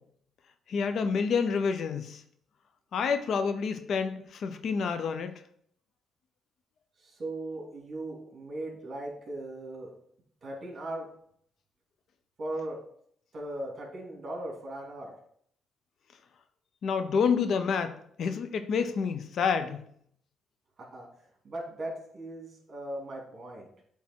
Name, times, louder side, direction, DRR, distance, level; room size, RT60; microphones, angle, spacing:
voice 1, 0.7-2.2 2.9-5.3 16.8-19.8, left 6 dB, 65° left, 9 dB, 0.7 m, -28 dB
voice 2, 7.0-9.9 10.4-11.1 12.4-12.8 13.3-15.1 20.8-21.1 21.4-23.7, right 1 dB, 45° right, -1 dB, 2.9 m, -38 dB
8.4 x 3.6 x 4.5 m, 0.66 s
cardioid pair, 90°, 0 cm